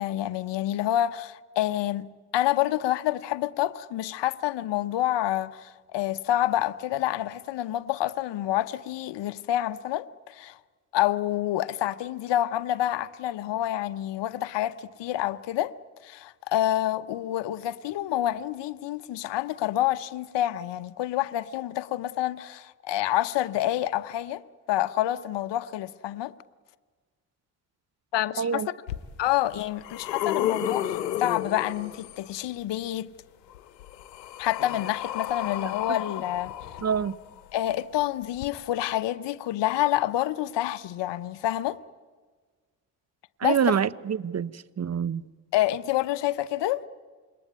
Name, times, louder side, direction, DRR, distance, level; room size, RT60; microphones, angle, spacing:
voice 1, 0.0-2.1 2.3-10.6 10.9-15.7 16.0-24.4 24.7-26.3 28.1-28.7 29.2-33.1 34.4-36.5 37.5-41.8 43.4-43.7 45.5-46.8, left 13 dB, 60° left, 1.0 m, -28 dB
voice 2, 28.4-28.7 36.8-37.1 43.4-45.2, right 7 dB, 35° right, 0.9 m, -26 dB
sound 1, 28.9-29.0 29.5-32.3 33.5-37.4 38.4-38.5, left 11 dB, 85° left, 1.1 m, -32 dB
27.0 x 22.0 x 9.4 m
hypercardioid pair, 40°, 48 cm